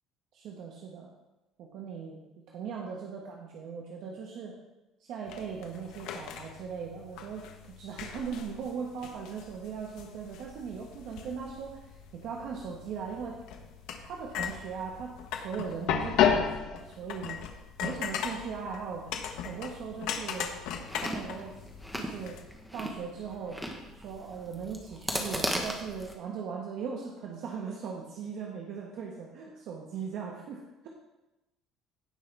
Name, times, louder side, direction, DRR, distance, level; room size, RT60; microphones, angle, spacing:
voice 1, 0.3-1.1 1.6-4.5 5.0-13.4 14.0-17.4 17.8-19.1 19.4-20.6 20.9-21.6 21.9-22.4 22.7-23.6 23.9-30.9, right 6 dB, 60° right, -1 dB, 1.3 m, -39 dB
sound 1, 5.3-22.4, left 8 dB, 70° left, 1.1 m, -35 dB
Chewing mastication, 20.7-26.2, equal, ahead, 1.2 m, -37 dB
17.0 x 5.6 x 3.4 m, 1.0 s
cardioid pair, 145°, 0 cm